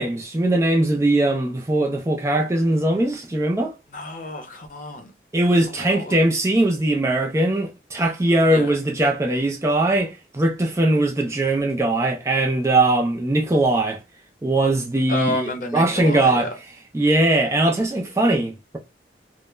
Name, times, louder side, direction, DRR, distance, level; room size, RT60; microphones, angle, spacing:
voice 1, 0.0-3.7 5.3-14.0 14.4-16.5 16.9-18.8, right 2 dB, 15° right, 0.3 m, -20 dB
voice 2, 3.9-5.1 5.8-6.2 8.5-8.8 15.1-16.5, left 2 dB, 45° left, 0.6 m, -30 dB
2.3 x 2.0 x 3.0 m
head